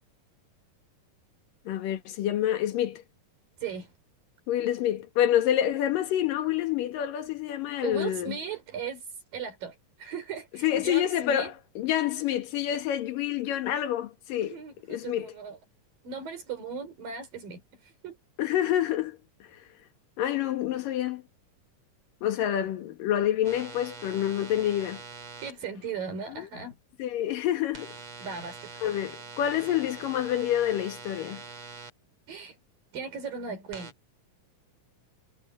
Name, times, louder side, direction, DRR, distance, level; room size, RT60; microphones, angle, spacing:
voice 1, 1.7-3.0 4.5-8.4 10.6-14.6 14.9-15.3 18.4-19.2 20.2-21.2 22.2-25.0 26.3-26.5 27.0-27.9 28.8-31.4, left 11 dB, 80° left, 3.3 m, -27 dB
voice 2, 3.6-3.9 7.8-9.0 9.3-11.5 14.4-15.6 16.0-18.2 25.4-26.8 28.2-28.7 32.3-32.6 32.9-33.9, right 5 dB, 85° right, 6.4 m, -37 dB
sound 1, 23.4-25.5 27.7-31.9 33.7-33.9, right 4 dB, 40° right, 4.9 m, -44 dB
omnidirectional pair, 3.9 m